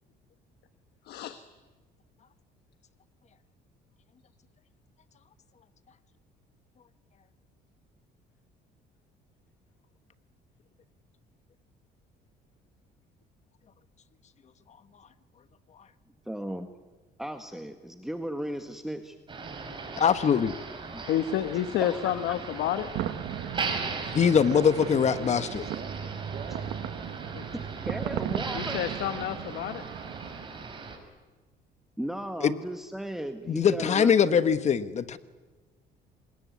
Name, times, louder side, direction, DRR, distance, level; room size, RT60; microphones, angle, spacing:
voice 1, 1.0-1.4 21.0-22.9 25.2-25.3 27.3-27.5 28.5-29.8, left 11 dB, 75° left, 10 dB, 1.3 m, -29 dB
voice 2, 16.3-16.7 17.2-19.1 20.9-21.0 21.8-22.3 27.5-28.8 32.0-34.4, right 1 dB, ahead, 6 dB, 1.5 m, -36 dB
Motor vehicle (road), 19.3-31.0, right 4 dB, 30° right, 5.4 m, -38 dB
voice 3, 20.0-20.6 24.1-25.6 32.4-32.5 33.5-35.2, left 7 dB, 40° left, 13 dB, 1.2 m, -22 dB
sound 1, 22.4-30.5, right 13 dB, 85° right, 1.3 m, -38 dB
voice 4, 23.9-26.0 26.3-26.8, right 7 dB, 45° right, 4 dB, 2.5 m, -43 dB
25.5 x 21.0 x 9.5 m, 1.3 s
cardioid pair, 110°, 17 cm